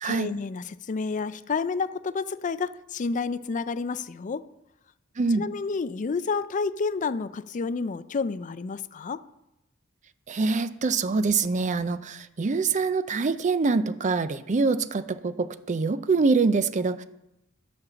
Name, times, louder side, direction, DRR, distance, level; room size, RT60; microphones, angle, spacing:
voice 1, 0.0-4.4 5.3-9.2, left 4 dB, 40° left, 15 dB, 0.4 m, -30 dB
voice 2, 10.3-17.0, right 4 dB, 35° right, 13 dB, 0.5 m, -25 dB
10.0 x 5.3 x 6.9 m, 0.88 s
head